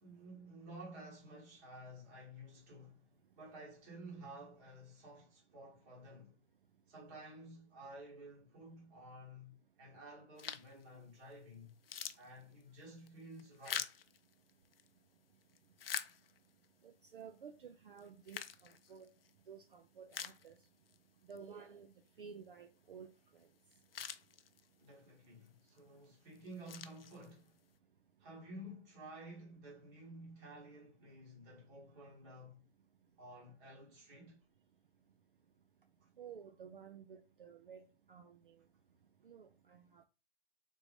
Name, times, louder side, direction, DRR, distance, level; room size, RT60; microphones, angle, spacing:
voice 1, 0.0-3.1 3.3-6.3 6.9-11.8 12.2-13.9 24.8-27.6 28.2-32.6 33.2-34.4 36.0-36.1, right 1 dB, 15° right, 1.0 m, -53 dB
sound 1, 10.4-10.8 11.3-11.4 11.7-14.9 15.4-16.7 17.2-17.3 18.0-19.3 19.7-19.8 20.1-21.0 21.3-21.4 23.4-23.5 23.7-24.9 25.5-25.8 26.3-27.6, left 8 dB, 55° left, 0.5 m, -45 dB
voice 2, 16.8-18.4 18.9-19.1 19.5-20.6 21.3-21.9 22.2-23.1 36.2-38.6 39.2-40.0, right 6 dB, 50° right, 0.5 m, -53 dB
3.8 x 3.7 x 3.0 m
hypercardioid pair, 165°, 35 cm